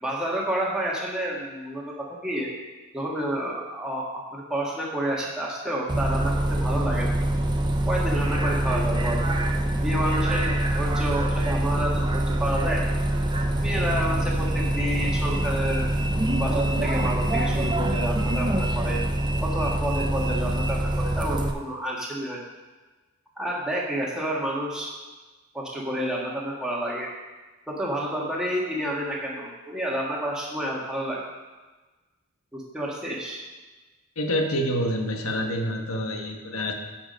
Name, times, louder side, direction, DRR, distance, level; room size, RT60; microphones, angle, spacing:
voice 1, 0.0-2.5 2.9-7.2 7.9-9.2 9.7-12.8 13.6-15.9 16.3-19.0 19.4-22.4 23.4-24.9 25.5-27.1 27.7-31.3 32.5-33.4, right 1 dB, 5° right, -5 dB, 1.6 m, -29 dB
Bus, 5.9-21.5, right 1 dB, 20° right, 0.5 m, -25 dB
voice 2, 34.2-36.7, equal, 75° left, 3 dB, 1.3 m, -27 dB
9.9 x 5.9 x 5.2 m, 1.2 s
head